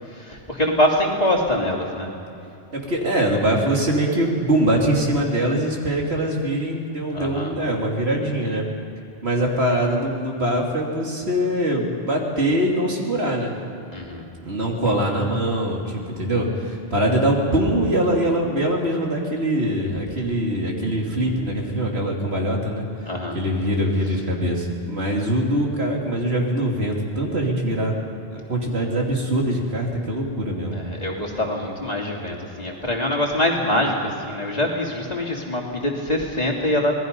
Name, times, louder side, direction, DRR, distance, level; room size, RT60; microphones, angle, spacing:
voice 1, 0.0-2.1 7.1-7.5 13.9-14.3 23.1-23.4 30.7-36.9, left 1 dB, 40° left, -2 dB, 3.0 m, -24 dB
voice 2, 2.7-8.7 9.2-13.5 14.5-22.8 23.3-28.0 28.3-30.8, right 1 dB, 75° right, -1 dB, 3.2 m, -23 dB
27.0 x 19.5 x 5.4 m, 2.8 s
omnidirectional pair, 1.1 m